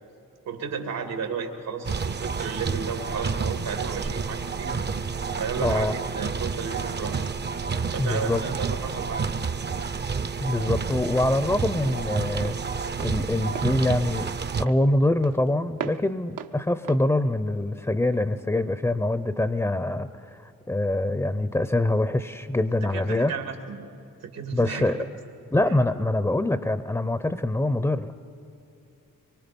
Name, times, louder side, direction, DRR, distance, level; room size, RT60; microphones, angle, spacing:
voice 1, 0.5-4.8 5.4-7.2 7.9-9.4 22.7-23.9 24.2-24.9, right 5 dB, 85° right, 4 dB, 2.5 m, -33 dB
sound 1, 1.8-14.7, right 5 dB, 30° right, 0.6 m, -30 dB
voice 2, 5.6-5.9 8.0-8.4 10.4-12.5 13.0-14.3 14.6-20.1 20.7-23.3 24.5-25.0 25.5-28.1, left 1 dB, 10° left, 12 dB, 0.6 m, -24 dB
Walk footsteps, 11.9-18.3, right 8 dB, 70° right, 0.8 m, -42 dB
24.0 x 23.0 x 5.3 m, 2.8 s
cardioid pair, 80°, 34 cm